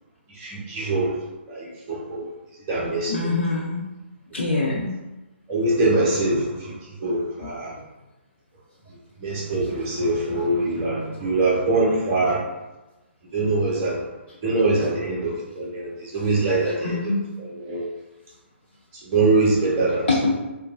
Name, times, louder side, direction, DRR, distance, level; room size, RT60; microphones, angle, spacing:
voice 1, 0.4-1.1 1.5-2.2 2.7-3.1 5.5-6.7 7.0-7.7 9.2-12.4 13.3-14.0 14.4-17.0 17.6-17.9 19.1-20.1, right 2 dB, 30° right, -5 dB, 0.9 m, -23 dB
voice 2, 3.1-3.9 4.3-4.9 7.4-7.5 16.8-17.3 20.1-20.4, left 3 dB, 65° left, -5 dB, 0.5 m, -24 dB
2.9 x 2.3 x 2.5 m, 1.0 s
figure-of-eight pair, 130°, 7 cm